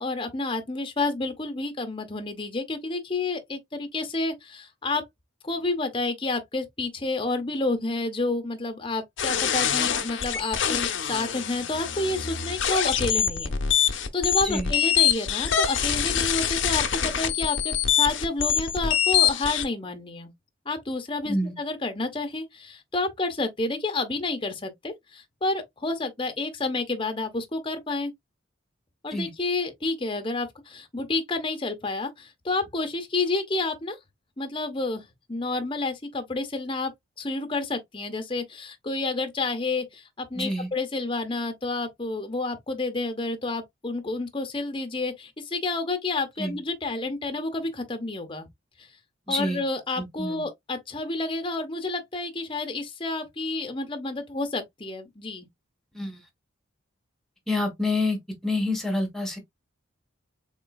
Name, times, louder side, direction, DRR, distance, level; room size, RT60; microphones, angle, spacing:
voice 1, 0.0-5.0 5.4-20.3 20.6-28.1 29.0-34.0 34.4-36.9 37.2-48.5 48.8-48.9 49.3-55.5, left 3 dB, 25° left, 0.8 m, -30 dB
sound 1, 9.2-19.6, left 9 dB, 65° left, 0.6 m, -25 dB
voice 2, 21.2-21.5 29.1-29.3 40.3-40.7 46.4-46.6 49.3-49.6 50.0-50.4 55.9-56.2 57.5-58.2 58.4-59.4, left 1 dB, ahead, 1.2 m, -27 dB
3.8 x 3.7 x 2.2 m
head